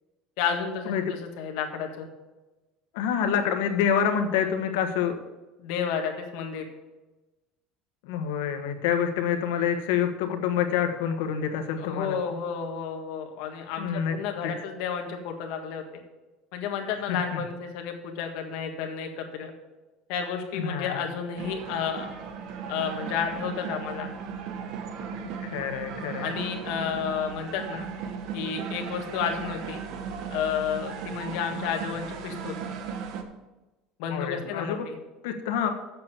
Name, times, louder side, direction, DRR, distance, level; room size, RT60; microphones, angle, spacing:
voice 1, 0.4-2.1 5.6-6.7 11.8-15.8 16.5-19.5 20.1-22.1 22.7-24.1 26.2-27.9 28.3-29.8 30.3-32.6 34.0-35.0, left 7 dB, 60° left, 4 dB, 1.7 m, -31 dB
voice 2, 2.9-5.2 8.0-12.2 13.8-14.1 14.4-14.5 17.1-17.4 20.5-21.0 25.4-26.3 26.8-26.9 34.1-34.9 35.2-35.7, left 8 dB, 85° left, 6 dB, 1.3 m, -27 dB
sound 1, 21.4-33.2, right 6 dB, 50° right, 1.1 m, -36 dB
7.7 x 7.2 x 7.3 m, 1.1 s
cardioid pair, 175°, 0 cm